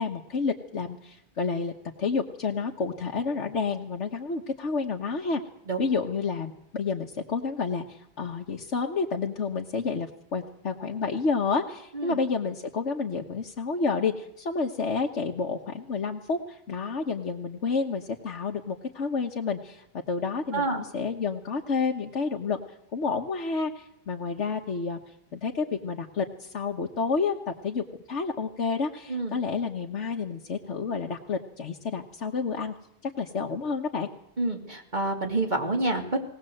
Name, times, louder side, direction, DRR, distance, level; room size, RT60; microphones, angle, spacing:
voice 1, 0.0-1.7 2.0-5.4 5.8-25.0 25.3-32.7 33.0-34.1, left 4 dB, 80° left, 1 dB, 1.6 m, -30 dB
voice 2, 29.1-29.4 34.4-36.2, right 2 dB, 40° right, 2 dB, 2.9 m, -28 dB
20.0 x 18.5 x 7.8 m, 0.73 s
omnidirectional pair, 1.2 m